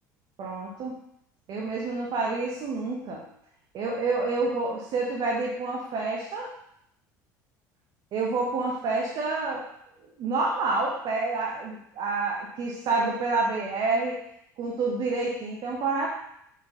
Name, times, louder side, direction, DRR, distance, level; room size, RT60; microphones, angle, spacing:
voice 1, 0.4-0.9 1.5-3.2 3.7-6.5 8.1-9.6 10.0-14.2 14.6-16.1, right 3 dB, 50° right, -3 dB, 1.2 m, -28 dB
6.6 x 3.8 x 3.9 m, 0.74 s
hypercardioid pair, 65°, 10 cm